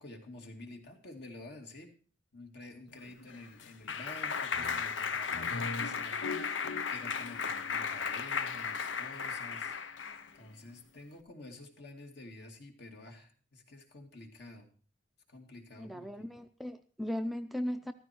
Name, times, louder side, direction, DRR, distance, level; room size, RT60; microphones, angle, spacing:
voice 1, 0.0-1.9 2.3-9.8 10.3-14.7 15.3-16.3, left 2 dB, 60° left, 3 dB, 2.5 m, -50 dB
Clapping, 3.0-10.3, left 6 dB, 80° left, 0.9 m, -35 dB
voice 2, 15.8-17.9, left 1 dB, ahead, 7 dB, 0.5 m, -37 dB
14.5 x 13.5 x 4.5 m, 0.39 s
head